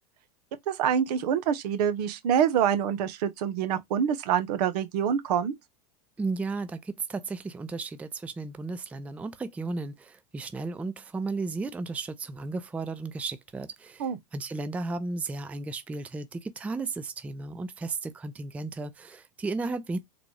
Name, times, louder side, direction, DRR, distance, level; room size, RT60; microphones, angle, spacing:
voice 1, 0.7-5.5 14.0-14.2, right 8 dB, 70° right, 0.8 m, -26 dB
voice 2, 6.2-20.0, right 3 dB, 5° right, 0.3 m, -34 dB
3.8 x 2.3 x 3.2 m
hypercardioid pair, 110°, 21 cm